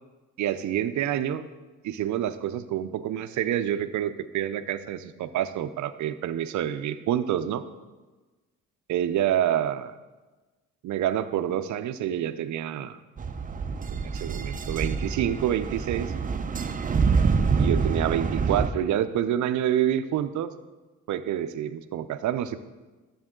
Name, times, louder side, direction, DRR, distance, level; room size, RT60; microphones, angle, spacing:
voice 1, 0.4-1.4 1.8-7.6 8.9-9.9 10.8-13.0 13.9-16.1 17.6-20.5 21.1-22.6, right 11 dB, 75° right, 11 dB, 0.6 m, -27 dB
sound 1, 13.2-18.7, right 5 dB, 25° right, 0.6 m, -26 dB
13.0 x 7.1 x 3.8 m, 1.2 s
cardioid pair, 90°, 30 cm